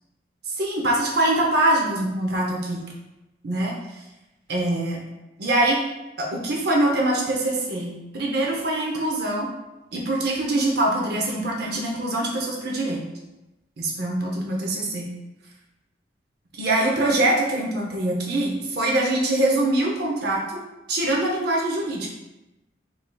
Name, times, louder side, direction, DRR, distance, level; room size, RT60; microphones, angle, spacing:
voice 1, 0.5-2.8 3.4-4.0 4.5-5.0 5.4-5.9 6.2-9.5 9.9-13.0 13.8-15.1 16.5-20.4 20.9-22.1, right 1 dB, 60° right, -2 dB, 0.6 m, -23 dB
3.7 x 3.2 x 2.2 m, 0.99 s
head